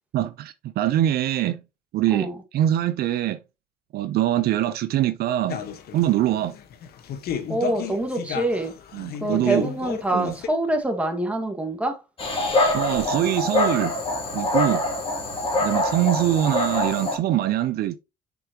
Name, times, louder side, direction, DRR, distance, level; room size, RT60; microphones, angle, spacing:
voice 1, 0.1-1.6 1.9-2.3 2.5-3.4 3.9-5.6 5.9-6.6 8.9-9.7 10.1-10.3 12.7-14.0 14.3-14.8 15.6-18.0, right 12 dB, 70° right, 0.6 m, -23 dB
sound 1, 5.5-10.5, left 8 dB, 65° left, 1.2 m, -33 dB
voice 2, 7.5-8.8 9.2-12.0, right 1 dB, 5° right, 1.7 m, -25 dB
Dog, 12.2-17.2, left 2 dB, 35° left, 2.6 m, -24 dB
6.7 x 6.1 x 2.9 m
cardioid pair, 110°, 17 cm